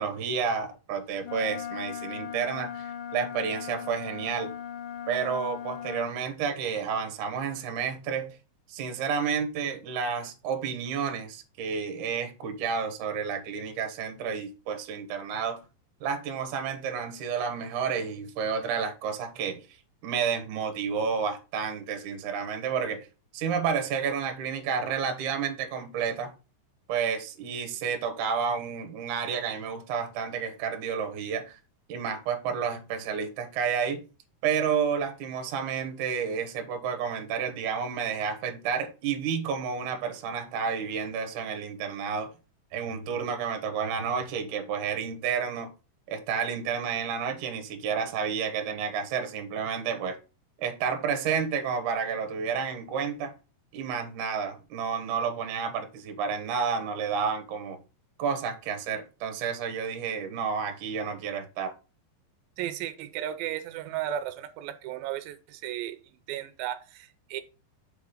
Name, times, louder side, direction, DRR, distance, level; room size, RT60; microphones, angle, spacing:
voice 1, 0.0-4.5 5.1-8.4 8.7-15.6 16.0-19.7 20.0-23.1 23.3-26.3 26.9-31.6 31.9-34.0 34.4-42.3 42.7-45.7 46.1-50.2 50.6-53.3 53.7-57.8 58.2-61.7, right 6 dB, 70° right, 2.2 m, -30 dB
Wind instrument woodwind instrument, 1.2-6.2, left 9 dB, 70° left, 2.3 m, -38 dB
voice 2, 62.6-66.0 66.3-67.4, right 11 dB, 85° right, 2.4 m, -34 dB
6.7 x 3.7 x 4.8 m
omnidirectional pair, 4.1 m